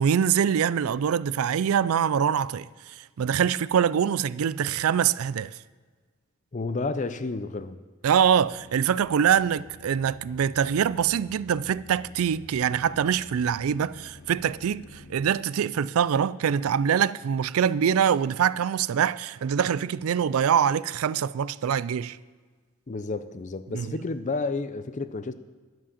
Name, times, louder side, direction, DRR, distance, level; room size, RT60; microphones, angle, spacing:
voice 1, 0.0-5.5 8.0-22.2 23.7-23.9, right 8 dB, 80° right, 0.4 m, -24 dB
voice 2, 6.5-7.8 22.9-25.3, left 3 dB, 35° left, 0.5 m, -31 dB
sound 1, 8.4-15.3, left 3 dB, 75° left, 0.8 m, -49 dB
11.0 x 7.5 x 7.2 m
head